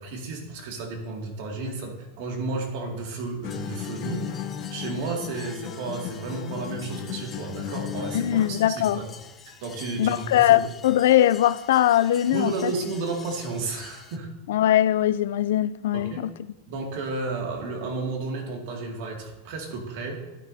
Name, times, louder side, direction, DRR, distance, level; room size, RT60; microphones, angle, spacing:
voice 1, 0.0-4.3 4.7-9.1 9.6-10.5 12.3-14.3 15.9-16.2 16.7-20.2, right 3 dB, 60° right, 2.3 m, -32 dB
sound 1, 3.4-8.8, left 8 dB, 50° left, 0.9 m, -35 dB
sound 2, 3.5-14.2, left 6 dB, 20° left, 0.7 m, -47 dB
voice 2, 8.1-9.0 10.0-12.7 14.5-16.3, left 12 dB, 75° left, 0.4 m, -21 dB
11.5 x 9.8 x 2.8 m
supercardioid pair, 145°, 0 cm